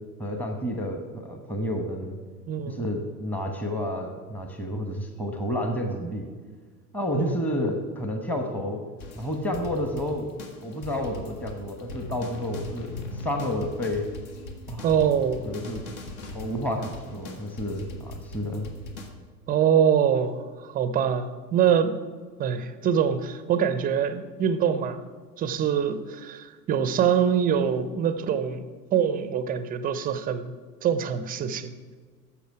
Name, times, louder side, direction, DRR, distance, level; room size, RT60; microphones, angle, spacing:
voice 1, 0.2-2.2 2.6-6.3 6.9-8.8 9.2-10.3 10.6-14.1 14.7-14.9 15.4-15.9 16.3-18.7, left 1 dB, 5° left, 4 dB, 1.0 m, -30 dB
voice 2, 2.5-2.8 7.1-7.4 14.8-15.5 19.5-21.9 22.4-25.0 25.4-30.5 30.8-31.7, right 8 dB, 20° right, 11 dB, 0.5 m, -24 dB
sound 1, 9.0-19.1, left 2 dB, 60° left, 1.6 m, -40 dB
11.5 x 7.2 x 4.7 m, 1.5 s
figure-of-eight pair, 85°, 49 cm